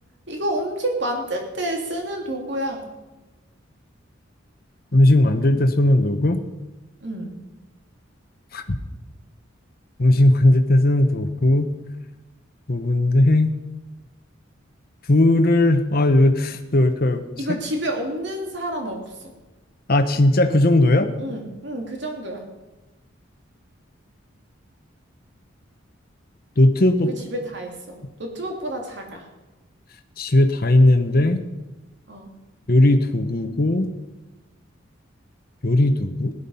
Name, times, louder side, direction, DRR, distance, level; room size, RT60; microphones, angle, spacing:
voice 1, 0.3-2.8 7.0-7.4 17.4-19.3 21.2-22.4 27.1-29.3 32.1-32.3, right 1 dB, 60° right, 2 dB, 3.0 m, -29 dB
voice 2, 4.9-6.4 8.5-8.8 10.0-11.7 12.7-13.5 15.1-17.2 19.9-21.1 26.6-27.1 30.2-31.4 32.7-33.9 35.6-36.3, left 1 dB, 50° left, 7 dB, 1.1 m, -17 dB
16.5 x 11.5 x 5.6 m, 1.1 s
head